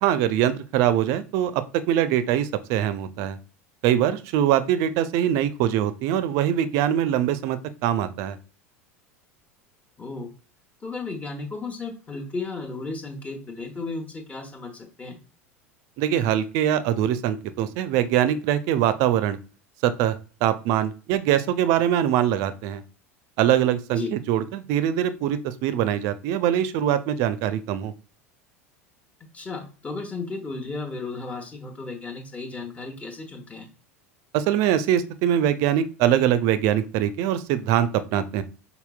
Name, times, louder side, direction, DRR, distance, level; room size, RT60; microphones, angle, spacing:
voice 1, 0.0-3.4 3.8-8.4 16.0-19.4 19.8-20.2 20.4-22.8 23.4-27.9 34.3-38.4, right 10 dB, 45° right, 13 dB, 0.5 m, -23 dB
voice 2, 10.0-10.3 10.8-15.2 23.9-24.1 29.3-33.7, left 3 dB, 20° left, 1 dB, 1.0 m, -34 dB
5.7 x 4.0 x 2.3 m, 0.36 s
figure-of-eight pair, 80°, 8 cm